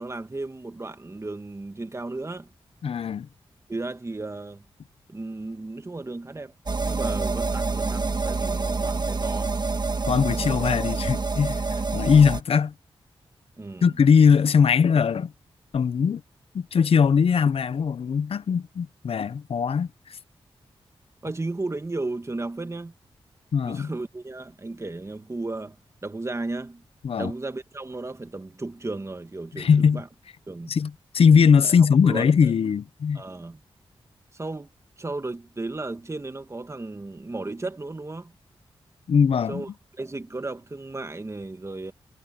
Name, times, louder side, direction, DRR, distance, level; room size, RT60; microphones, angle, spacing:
voice 1, 0.0-2.5 3.7-4.6 5.1-6.5 6.8-9.6 10.3-10.5 13.6-14.0 21.2-22.9 23.6-25.8 26.0-26.8 27.2-30.1 30.5-30.7 31.6-31.7 32.0-32.5 33.1-33.6 34.3-34.7 35.0-38.3 39.5-39.7 40.0-41.9, right 2 dB, 30° right, 1.8 m, -34 dB
voice 2, 2.8-3.3 10.1-12.7 13.8-15.3 15.7-16.2 16.5-20.2 23.5-23.9 27.0-27.3 29.5-30.0 30.7-33.2 39.1-39.6, left 6 dB, 75° left, 0.8 m, -20 dB
sound 1, 5.5-5.8 6.3-6.6 7.2-7.4 8.2-8.5 9.1-9.4 10.0-10.2 10.8-11.1 11.7-12.0, right 5 dB, 65° right, 7.6 m, -59 dB
sound 2, 6.7-12.4, right 4 dB, 45° right, 1.5 m, -27 dB
cardioid pair, 65°, 10 cm